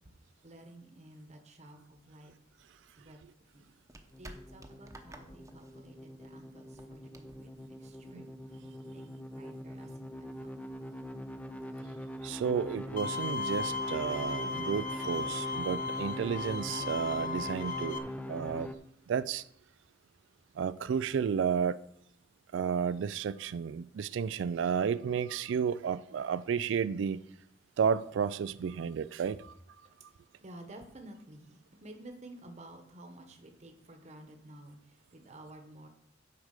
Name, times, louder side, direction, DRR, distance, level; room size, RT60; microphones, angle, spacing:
voice 1, 0.4-2.3 3.0-3.2 3.5-3.7 4.2-8.6 8.8-10.8 29.3-29.5 30.1-35.9, right 1 dB, 40° right, 1.1 m, -52 dB
sound 1, 2.5-8.4, right 1 dB, 15° right, 0.9 m, -54 dB
sound 2, 4.1-18.7, equal, 5° left, 0.5 m, -42 dB
voice 2, 12.2-18.0 18.3-18.7 19.1-19.4 20.6-21.8 22.5-27.2 27.8-29.5, right 7 dB, 70° right, 0.3 m, -32 dB
Bowed string instrument, 13.0-18.0, left 4 dB, 50° left, 0.8 m, -36 dB
9.6 x 4.9 x 6.6 m
head